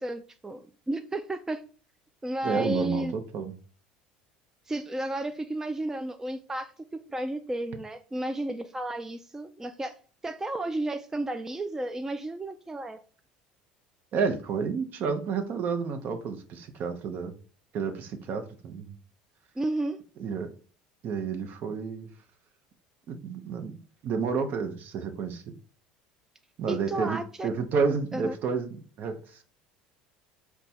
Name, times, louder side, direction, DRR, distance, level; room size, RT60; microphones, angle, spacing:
voice 1, 0.0-1.6 2.2-3.1 4.7-10.0 10.2-13.0 19.6-20.0 26.7-27.5 28.1-28.3, right 1 dB, 15° right, 0.4 m, -32 dB
voice 2, 2.4-3.5 14.1-17.3 17.7-19.0 20.2-20.5 21.0-22.1 23.1-23.8 24.0-25.4 26.6-29.4, right 5 dB, 50° right, 0.7 m, -30 dB
4.3 x 2.2 x 4.1 m
hypercardioid pair, 80°, 4 cm